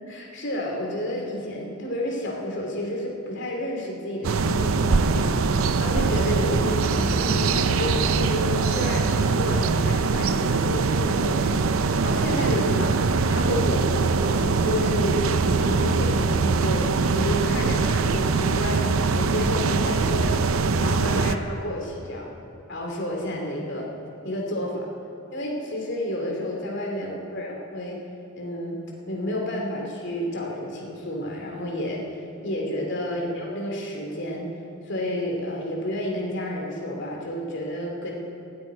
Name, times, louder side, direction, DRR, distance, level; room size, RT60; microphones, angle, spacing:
voice 1, 0.0-20.4 20.8-22.3 22.7-23.9 24.2-24.9 25.3-28.0 28.4-28.8 29.1-32.0 32.4-34.5 34.8-38.1, left 1 dB, 55° left, -1 dB, 2.9 m, -30 dB
sound 1, 4.2-21.4, right 4 dB, 80° right, 0.6 m, -22 dB
14.0 x 8.1 x 9.9 m, 2.7 s
head